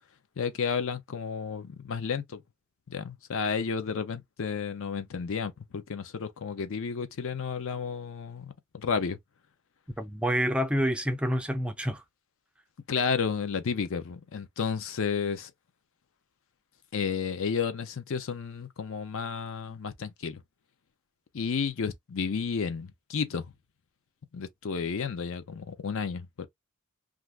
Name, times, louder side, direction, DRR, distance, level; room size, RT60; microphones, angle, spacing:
voice 1, 0.4-2.4 2.9-9.2 12.9-15.5 16.9-20.4 21.3-23.5 24.3-26.5, left 6 dB, 60° left, 0.5 m, -32 dB
voice 2, 10.0-12.0, equal, 5° right, 0.3 m, -28 dB
2.5 x 2.4 x 3.2 m
head